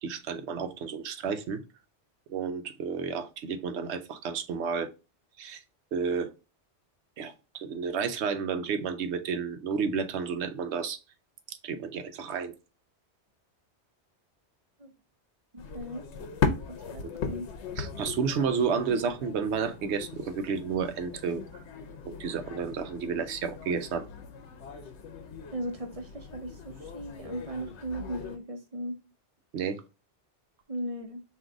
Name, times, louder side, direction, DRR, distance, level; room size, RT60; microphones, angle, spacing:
voice 1, 0.0-1.6 2.3-4.9 5.4-5.6 5.9-6.3 7.2-11.0 11.6-12.5 17.0-17.1 17.8-21.4 22.1-24.1 29.5-29.8, right 6 dB, 75° right, 9 dB, 0.9 m, -31 dB
voice 2, 15.5-16.0 16.9-17.5 25.5-29.0 30.7-31.2, right 1 dB, 35° right, 5 dB, 0.7 m, -37 dB
sound 1, 15.6-28.4, left 5 dB, 75° left, 1.0 m, -38 dB
3.8 x 2.6 x 4.5 m, 0.29 s
omnidirectional pair, 1.2 m